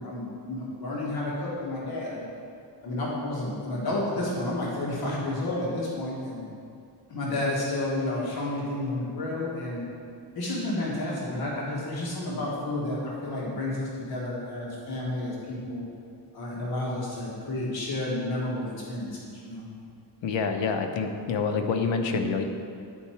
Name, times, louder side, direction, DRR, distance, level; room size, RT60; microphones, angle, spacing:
voice 1, 0.0-2.3 2.8-6.5 7.1-9.8 10.3-15.9 16.3-19.6, left 1 dB, 55° left, -5 dB, 1.4 m, -31 dB
voice 2, 20.2-22.4, left 5 dB, 85° left, 5 dB, 0.8 m, -27 dB
9.5 x 4.6 x 4.3 m, 2.4 s
wide cardioid pair, 175°, 43 cm